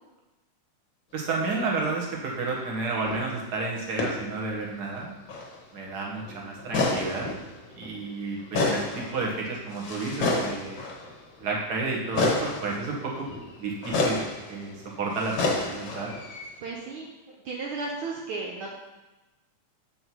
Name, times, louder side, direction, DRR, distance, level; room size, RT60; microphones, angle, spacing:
voice 1, 1.1-5.1 5.7-7.3 7.7-10.8 11.4-13.3 13.6-14.2 14.5-16.2, right 3 dB, 45° right, -2 dB, 1.4 m, -31 dB
sound 1, 3.1-3.4 4.0-4.3 4.5-4.6 5.2-5.6 5.9-6.0 6.2-8.1 8.4-11.5 12.1-16.6, left 3 dB, 55° left, 1.4 m, -30 dB
voice 2, 16.6-18.8, right 3 dB, 70° right, -2 dB, 1.2 m, -35 dB
7.7 x 5.5 x 4.6 m, 1.0 s
omnidirectional pair, 3.4 m